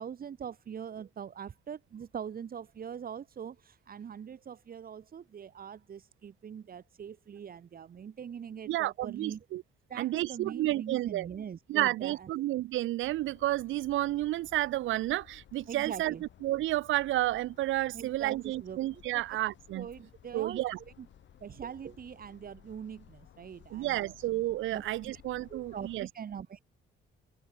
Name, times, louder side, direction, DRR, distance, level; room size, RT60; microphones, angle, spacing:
voice 1, 0.0-9.4 9.9-12.3 15.7-16.2 17.9-19.2 19.7-20.6 21.0-21.1 21.4-24.1 24.7-25.1 25.5-26.6, right 8 dB, 45° right, 1.6 m, -42 dB
voice 2, 8.7-9.6 10.0-11.3 11.7-16.1 16.4-19.9 20.3-20.8 23.7-26.1, right 16 dB, 80° right, 0.6 m, -31 dB
sound 1, 13.0-26.1, left 11 dB, 65° left, 2.3 m, -58 dB
cardioid pair, 90°, 20 cm